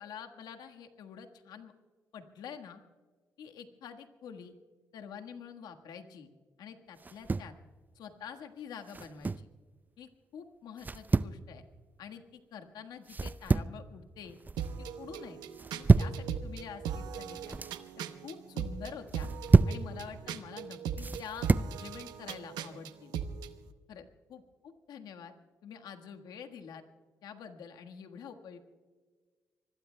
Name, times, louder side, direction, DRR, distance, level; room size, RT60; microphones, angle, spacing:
voice 1, 0.0-1.7 2.1-2.8 3.4-4.5 4.9-6.3 6.6-7.5 7.9-9.5 10.0-11.6 12.0-14.4 14.8-15.4 15.7-17.6 18.2-19.3 19.6-23.1 23.9-24.0 24.3-25.3 25.6-26.8 27.2-28.6, left 7 dB, 80° left, 5 dB, 1.5 m, -47 dB
sound 1, 7.0-7.6 8.9-9.5 10.8-11.4 13.1-13.8 14.2-14.7 15.5-16.2 17.3-17.8 19.1-19.8 21.0-21.7, right 4 dB, 25° right, 0.5 m, -27 dB
sound 2, 14.6-23.5, right 7 dB, 85° right, 0.8 m, -39 dB
26.0 x 21.0 x 2.2 m, 1.5 s
supercardioid pair, 60°, 7 cm